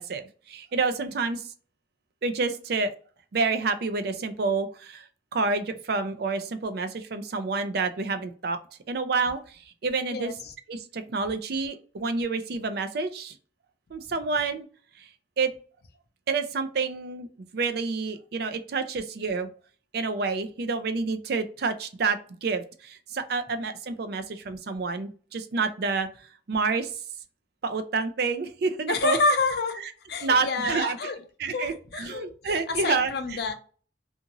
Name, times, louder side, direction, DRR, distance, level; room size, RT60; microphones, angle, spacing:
voice 1, 0.0-1.4 2.2-2.9 3.3-5.1 5.3-8.6 8.9-9.4 9.8-10.3 10.7-13.4 13.9-14.6 15.0-15.1 15.4-15.5 16.3-17.3 17.5-19.5 19.9-26.1 26.5-26.9 27.6-29.2 29.8-29.9 30.2-31.1 31.4-33.4, right 4 dB, 55° right, 9 dB, 0.4 m, -28 dB
voice 2, 28.9-29.8 30.1-31.2 31.5-33.5, left 3 dB, 55° left, 7 dB, 0.5 m, -28 dB
2.5 x 2.5 x 2.8 m, 0.40 s
head